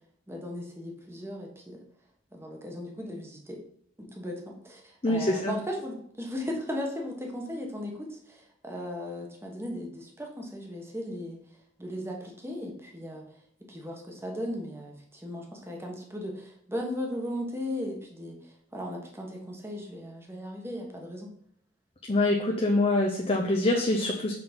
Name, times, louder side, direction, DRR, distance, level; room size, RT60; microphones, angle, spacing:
voice 1, 0.3-1.8 2.3-3.6 4.1-11.4 11.8-13.2 13.7-18.4 18.7-21.3, left 1 dB, 15° right, 0 dB, 1.2 m, -37 dB
voice 2, 5.0-5.5 22.1-24.3, left 2 dB, 30° left, 1 dB, 0.7 m, -25 dB
5.9 x 3.8 x 5.2 m, 0.68 s
head